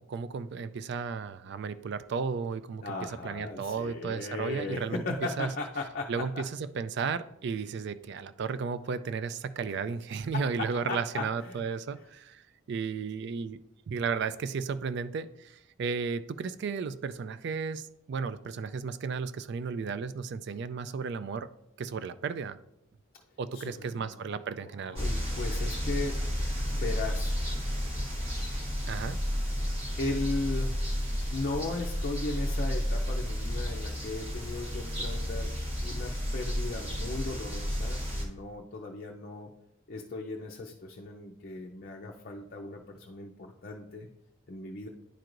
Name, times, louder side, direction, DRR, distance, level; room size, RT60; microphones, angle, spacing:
voice 1, 0.0-5.5 6.1-12.4 12.7-13.6 13.9-21.5 21.8-22.6 23.4-25.0 28.9-29.2, right 5 dB, 55° right, 14 dB, 0.3 m, -34 dB
voice 2, 2.8-6.4 10.4-11.6 23.5-26.2 26.7-27.3 30.0-30.8 31.3-35.5 35.8-39.5 39.9-44.1 44.5-44.9, left 3 dB, 45° left, 0 dB, 0.5 m, -37 dB
sound 1, 25.0-38.3, equal, 30° right, 1.1 m, -32 dB
10.0 x 4.6 x 2.5 m, 0.80 s
head